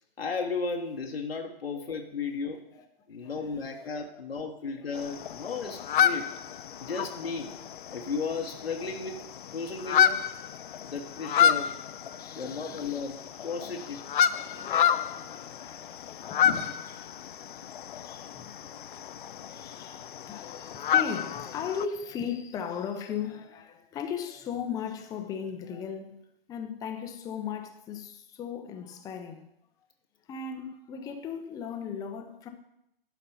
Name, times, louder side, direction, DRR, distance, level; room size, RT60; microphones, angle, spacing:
voice 1, 0.2-2.6 3.1-6.3 6.8-7.6 7.9-9.3 9.5-10.2 10.8-11.8 12.3-14.0 16.4-16.7 30.6-30.7, left 4 dB, 80° left, 1.1 m, -34 dB
voice 2, 3.2-3.9 4.4-4.5 4.7-5.2 11.3-11.7 12.2-13.0 13.6-14.0 14.3-17.0 17.3-26.2 26.5-29.5 30.3-32.5, left 7 dB, 10° left, 0.6 m, -38 dB
sound 1, 4.9-21.9, left 9 dB, 60° left, 0.5 m, -30 dB
12.0 x 4.2 x 5.5 m
figure-of-eight pair, 120°, 30 cm